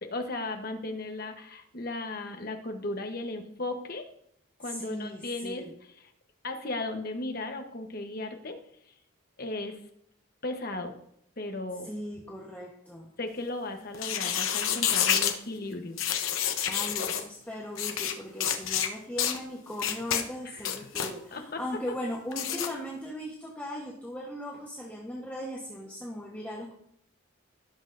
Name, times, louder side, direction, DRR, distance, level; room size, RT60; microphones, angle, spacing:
voice 1, 0.0-4.0 4.6-5.7 6.4-8.6 9.4-9.8 10.4-11.0 11.4-11.9 13.2-16.0 20.4-20.7 21.3-21.6, left 2 dB, 45° left, 5 dB, 1.0 m, -36 dB
voice 2, 4.6-5.7 11.8-13.1 16.7-26.7, equal, 10° left, -4 dB, 1.0 m, -38 dB
sound 1, 13.9-15.4 16.0-17.2 17.8-18.1 18.4-18.9 19.2-19.4 19.8-20.2 20.6-21.1 22.3-22.7, left 9 dB, 80° left, 0.8 m, -28 dB
16.5 x 6.2 x 2.6 m, 0.72 s
head